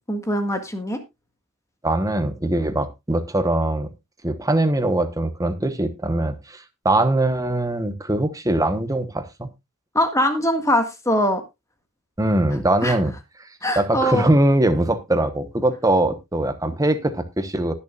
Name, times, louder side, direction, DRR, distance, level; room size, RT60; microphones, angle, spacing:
voice 1, 0.1-1.0 9.9-11.4 12.8-13.0 13.6-14.3, equal, 15° left, 1.7 m, -22 dB
voice 2, 1.8-3.9 4.2-9.5 12.2-13.1 13.4-13.5 13.8-17.7, right 1 dB, 15° right, 1.1 m, -22 dB
19.5 x 6.9 x 2.4 m
head